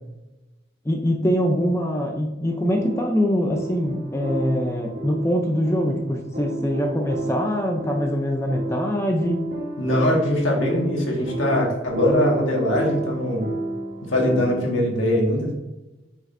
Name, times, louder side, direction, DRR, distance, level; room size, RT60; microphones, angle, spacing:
voice 1, 0.9-9.4, equal, 15° left, 1 dB, 0.6 m, -23 dB
sound 1, 2.4-14.7, right 2 dB, 45° right, 2.1 m, -32 dB
voice 2, 9.8-13.5 14.0-15.5, left 1 dB, 70° left, -1 dB, 1.8 m, -22 dB
9.3 x 4.9 x 2.7 m, 1.0 s
head